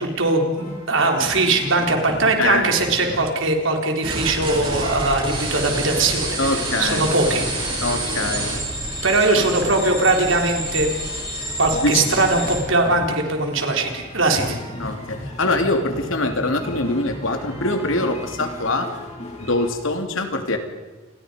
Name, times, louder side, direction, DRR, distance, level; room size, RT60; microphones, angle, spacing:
voice 1, 0.0-7.9 9.0-10.9 11.6-14.6, right 2 dB, 70° right, 2 dB, 3.9 m, -20 dB
sound 1, 0.6-3.7 4.2-4.4 4.7-19.7, left 1 dB, 35° left, 5.2 m, -37 dB
voice 2, 2.4-2.7 6.4-7.1 7.8-8.5 9.4-9.8 11.8-12.0 14.8-18.9 19.4-20.6, left 2 dB, 75° left, 5 dB, 3.0 m, -23 dB
sound 2, 4.0-12.6, right 1 dB, 25° right, 7.1 m, -27 dB
29.0 x 21.5 x 5.2 m, 1.2 s
head